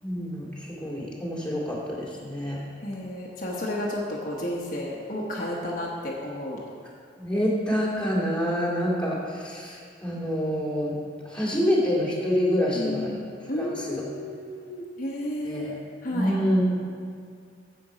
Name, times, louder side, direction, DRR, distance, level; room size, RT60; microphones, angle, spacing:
voice 1, 0.0-2.6 7.2-10.9 11.2-13.1 13.6-14.0 15.4-15.8 16.1-16.8, equal, 5° left, -5 dB, 2.2 m, -27 dB
voice 2, 2.8-6.6 12.7-13.2 13.5-16.3, left 1 dB, 50° left, -3 dB, 1.1 m, -32 dB
9.6 x 7.6 x 5.0 m, 2.3 s
head